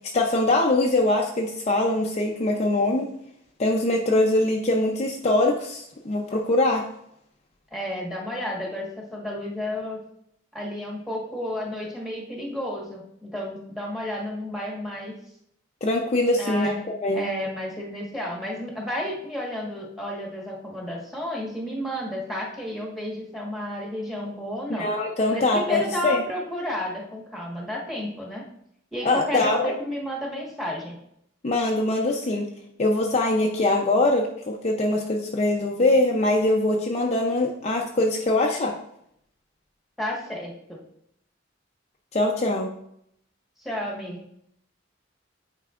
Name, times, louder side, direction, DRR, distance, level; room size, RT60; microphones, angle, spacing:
voice 1, 0.1-3.1 3.6-6.8 15.8-17.3 24.7-26.2 29.0-29.7 31.4-32.5 32.8-38.7 42.1-42.7, left 2 dB, 35° left, 1 dB, 0.5 m, -23 dB
voice 2, 7.7-10.0 10.5-15.1 16.4-16.8 17.1-24.9 25.3-28.4 28.9-30.9 40.0-40.8 43.6-44.2, left 1 dB, ahead, -3 dB, 1.4 m, -32 dB
9.1 x 4.6 x 2.4 m, 0.73 s
head